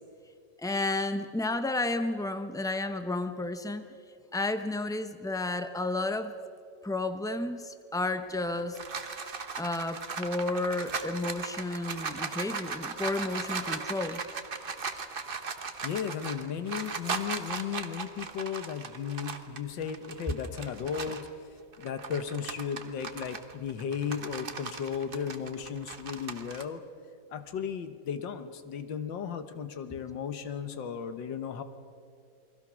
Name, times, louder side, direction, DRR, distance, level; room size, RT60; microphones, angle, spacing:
voice 1, 0.6-3.9 4.3-6.3 6.8-8.8 9.6-14.2, left 2 dB, 5° left, 9 dB, 0.3 m, -32 dB
sound 1, 8.3-21.3 21.7-26.6, right 5 dB, 35° right, 1.1 m, -38 dB
voice 2, 15.8-21.3 21.8-26.8 27.3-31.6, left 7 dB, 80° left, 9 dB, 1.8 m, -35 dB
28.5 x 22.0 x 6.2 m, 2.4 s
omnidirectional pair, 2.0 m